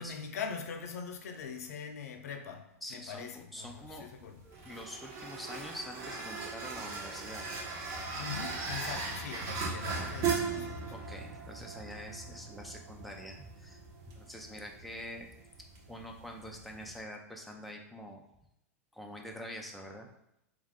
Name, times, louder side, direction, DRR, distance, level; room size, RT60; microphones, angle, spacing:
voice 1, 0.0-4.4 8.2-10.9, left 6 dB, 80° left, 0.6 m, -42 dB
voice 2, 2.8-4.1 4.4-7.5 10.9-13.8 14.1-15.3 15.6-18.2 18.9-20.1, equal, ahead, 0.7 m, -45 dB
sound 1, 3.7-17.0, right 4 dB, 50° right, 1.2 m, -39 dB
3.6 x 3.2 x 3.6 m
hypercardioid pair, 105°, 8 cm